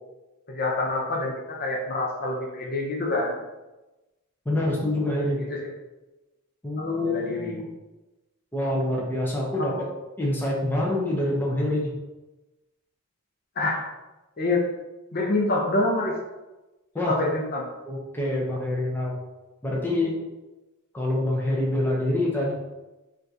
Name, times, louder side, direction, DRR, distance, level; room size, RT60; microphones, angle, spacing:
voice 1, 0.5-3.4 5.5-5.6 6.8-7.7 9.6-9.8 13.6-13.8 14.4-14.7 15.1-16.1 17.0-17.7, left 2 dB, 45° left, 0 dB, 0.7 m, -26 dB
voice 2, 4.5-5.4 6.6-7.6 8.5-9.7 10.2-11.9 16.9-17.1 17.9-19.2 19.6-20.2 20.9-22.5, left 1 dB, 10° left, -3 dB, 0.6 m, -26 dB
5.5 x 2.5 x 2.7 m, 1.1 s
head